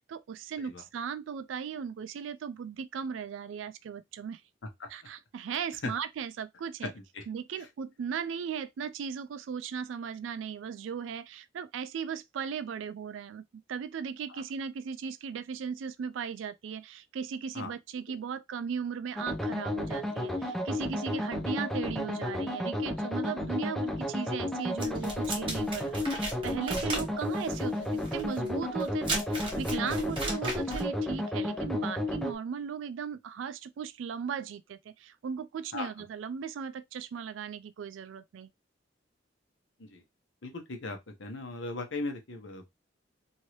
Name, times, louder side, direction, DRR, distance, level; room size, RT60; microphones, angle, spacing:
voice 1, 0.0-4.4 4.9-6.9 7.3-13.4 13.7-38.5, right 7 dB, 80° right, 0.3 m, -37 dB
sound 1, 19.2-32.3, left 1 dB, ahead, 0.6 m, -32 dB
sound 2, 24.8-30.9, right 2 dB, 30° right, 1.3 m, -36 dB
voice 2, 40.4-42.7, left 2 dB, 80° left, 0.9 m, -38 dB
2.9 x 2.7 x 3.0 m
head